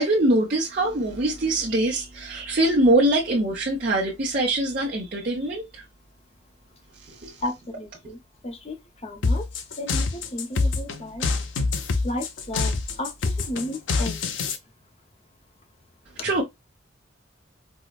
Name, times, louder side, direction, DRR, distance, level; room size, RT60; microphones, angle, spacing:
voice 1, 0.0-5.9 6.9-7.4 16.1-16.4, right 1 dB, 50° right, 0.8 m, -23 dB
voice 2, 7.4-8.2 8.4-8.8 9.0-9.5 9.8-11.2 12.0-13.1 13.5-14.2, left 1 dB, 35° left, 0.7 m, -33 dB
sound 1, 9.2-14.6, left 3 dB, 90° left, 0.6 m, -25 dB
4.6 x 2.1 x 2.4 m
head